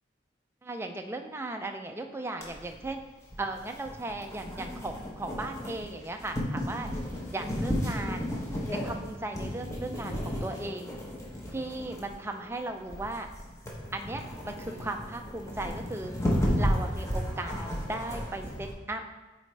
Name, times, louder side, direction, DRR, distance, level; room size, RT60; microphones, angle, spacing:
voice 1, 0.6-3.0 3.4-6.9 7.3-8.3 8.7-10.9 11.5-13.3 13.9-16.1 16.6-19.0, right 2 dB, 15° right, 4 dB, 0.4 m, -36 dB
sound 1, 2.4-18.7, equal, 15° left, 1.0 m, -34 dB
8.2 x 4.2 x 3.2 m, 1.2 s
head